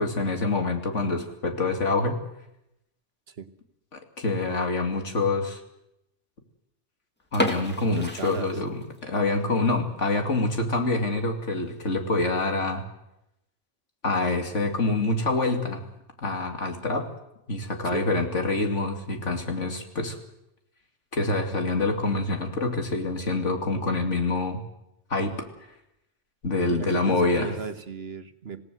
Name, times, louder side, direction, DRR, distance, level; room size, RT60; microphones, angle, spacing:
voice 1, 0.0-2.2 3.9-5.6 7.3-12.8 14.0-15.8 16.2-17.1 17.5-20.2 21.1-24.6 25.1-25.3 26.4-27.6, left 2 dB, 90° left, 4 dB, 2.9 m, -26 dB
sound 1, 7.3-9.2 9.5-9.6 10.1-10.3 10.7-10.8 11.1-11.2 11.9-12.3, equal, 10° left, 2.4 m, -31 dB
voice 2, 7.9-8.6 17.8-18.1 26.7-28.6, right 6 dB, 60° right, 9 dB, 1.4 m, -36 dB
26.5 x 17.5 x 7.8 m, 0.85 s
omnidirectional pair, 1.2 m